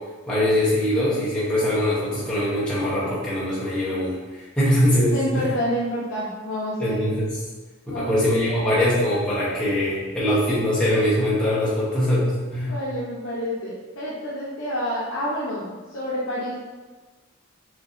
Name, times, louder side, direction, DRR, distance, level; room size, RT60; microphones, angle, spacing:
voice 1, 0.3-5.5 6.8-7.3 7.9-12.8, left 1 dB, 5° left, -10 dB, 0.9 m, -22 dB
voice 2, 5.1-7.1 7.9-8.3 8.8-8.9 12.7-16.6, equal, 80° left, -7 dB, 0.7 m, -28 dB
5.2 x 2.7 x 2.5 m, 1.3 s
head